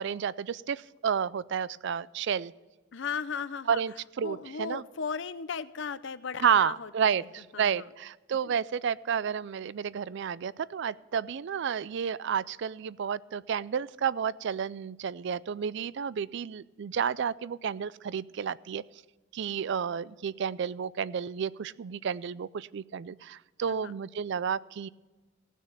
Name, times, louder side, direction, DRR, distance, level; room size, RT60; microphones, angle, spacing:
voice 1, 0.0-2.5 3.7-4.8 6.4-18.8 19.3-24.9, right 7 dB, 60° right, 19 dB, 0.4 m, -31 dB
voice 2, 2.9-3.8 4.2-7.3 7.5-7.9 8.4-8.6 23.7-23.9, left 6 dB, 65° left, 15 dB, 0.6 m, -36 dB
17.5 x 6.4 x 6.5 m, 1.2 s
head